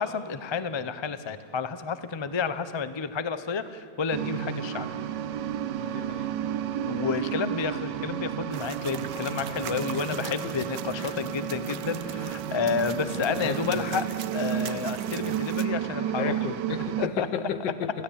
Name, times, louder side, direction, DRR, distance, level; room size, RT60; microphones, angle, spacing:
voice 1, 0.0-4.9 6.8-14.1 14.3-16.3 17.0-17.3, left 5 dB, 35° left, 12 dB, 0.4 m, -30 dB
sound 1, 4.1-17.1, right 10 dB, 80° right, 1.4 m, -32 dB
voice 2, 5.8-6.3 9.5-9.7 10.1-10.5 10.9-11.2 11.8-11.9 12.9-13.9 16.2-17.9, left 7 dB, 85° left, 12 dB, 1.7 m, -34 dB
sound 2, 8.5-15.7, right 10 dB, 60° right, 1.2 m, -42 dB
23.5 x 16.5 x 8.6 m, 2.4 s
omnidirectional pair, 1.9 m